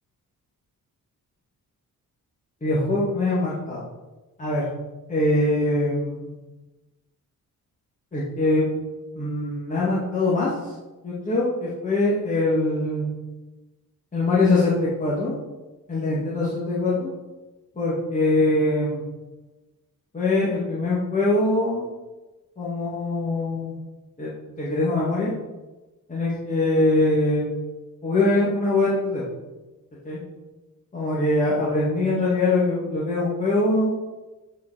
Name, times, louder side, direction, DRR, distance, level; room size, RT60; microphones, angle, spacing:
voice 1, 2.6-3.8 4.4-4.7 5.1-6.3 8.1-8.6 9.1-10.5 11.0-13.1 14.1-15.3 15.9-17.1 17.8-19.0 20.1-21.9 22.6-23.8 24.2-24.3 24.6-25.3 26.1-27.4 28.0-29.2 30.0-30.2 30.9-33.9, left 2 dB, 25° left, -7 dB, 1.7 m, -22 dB
6.6 x 5.1 x 6.6 m, 1.1 s
wide cardioid pair, 165°, 33 cm